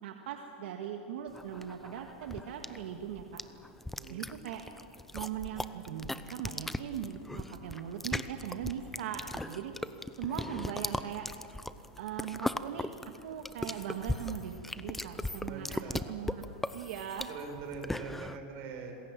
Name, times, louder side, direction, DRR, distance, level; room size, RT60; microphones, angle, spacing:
voice 1, 0.0-3.4 4.1-4.6 5.1-9.7 10.2-11.3 12.0-12.9 13.2-16.5 16.7-17.3, right 9 dB, 70° right, 4 dB, 1.8 m, -40 dB
sound 1, 1.3-18.4, left 1 dB, 5° left, 0.6 m, -38 dB
voice 2, 15.4-16.1 17.3-18.9, right 5 dB, 40° right, 3 dB, 5.2 m, -43 dB
27.5 x 21.5 x 7.6 m, 2.6 s
supercardioid pair, 155°, 6 cm